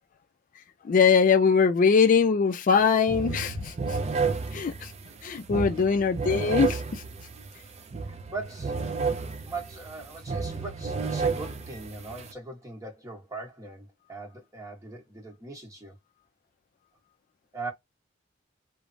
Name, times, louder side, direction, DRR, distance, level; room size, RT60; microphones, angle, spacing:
voice 1, 0.8-4.0 4.5-4.9 5.2-7.0, left 5 dB, 45° left, 0.3 m, -22 dB
sound 1, 2.7-2.8 3.1-12.3, right 4 dB, 35° right, 0.4 m, -31 dB
voice 2, 8.0-8.8 9.5-16.0 17.5-17.7, right 3 dB, 15° right, 1.0 m, -40 dB
3.1 x 2.0 x 2.5 m
head